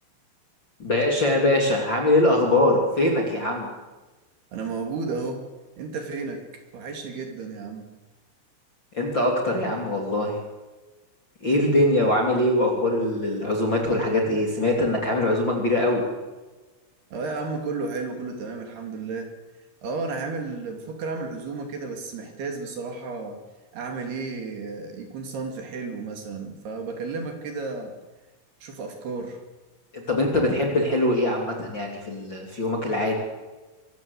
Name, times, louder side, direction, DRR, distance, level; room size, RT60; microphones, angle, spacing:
voice 1, 0.8-3.7 8.9-10.4 11.4-16.0 29.9-33.1, left 1 dB, 30° left, 1 dB, 2.9 m, -22 dB
voice 2, 4.5-5.5 5.8-7.9 17.1-19.3 19.8-23.4 23.7-27.9 28.6-29.4, right 4 dB, 55° right, 4 dB, 4.2 m, -33 dB
25.5 x 15.5 x 8.2 m, 1.2 s
omnidirectional pair, 5.9 m